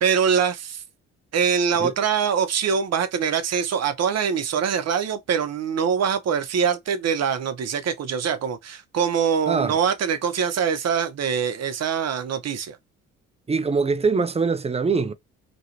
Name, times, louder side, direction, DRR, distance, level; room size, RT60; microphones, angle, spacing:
voice 1, 0.0-0.8 1.3-12.8, right 7 dB, 50° right, 0.8 m, -23 dB
voice 2, 13.5-15.1, right 4 dB, 20° right, 0.5 m, -23 dB
3.0 x 2.5 x 2.9 m
supercardioid pair, 55°, 33 cm